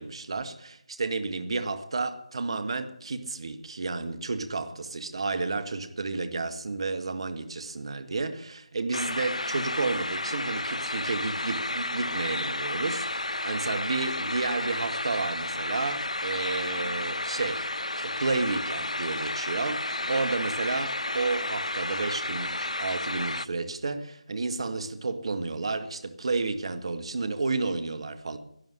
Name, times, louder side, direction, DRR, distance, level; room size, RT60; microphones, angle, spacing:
voice 1, 0.0-17.7 17.9-28.4, right 3 dB, 55° right, 1.6 m, -31 dB
sound 1, 8.9-23.5, left 2 dB, 85° left, 0.5 m, -32 dB
11.5 x 11.5 x 8.0 m
figure-of-eight pair, 155°, 4 cm